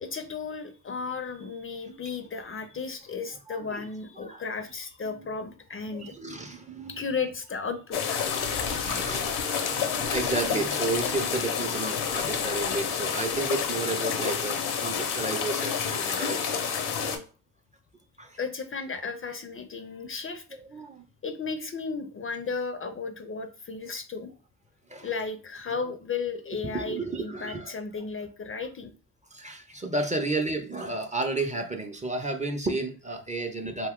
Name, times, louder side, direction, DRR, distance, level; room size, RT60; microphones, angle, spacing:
voice 1, 0.0-6.1 6.9-8.2 8.8-8.9 18.4-20.4 21.2-24.3 25.0-28.9, left 4 dB, 35° left, 0.5 m, -34 dB
voice 2, 3.5-3.9 4.2-4.4 5.0-5.3 5.9-7.0 8.4-16.6 17.0-17.2 18.2-18.4 20.5-21.0 24.9-25.1 26.6-27.8 29.3-33.9, right 2 dB, 20° right, 0.5 m, -32 dB
sound 1, 7.9-17.2, left 7 dB, 75° left, 0.7 m, -29 dB
2.7 x 2.3 x 3.6 m
supercardioid pair, 60°, 40 cm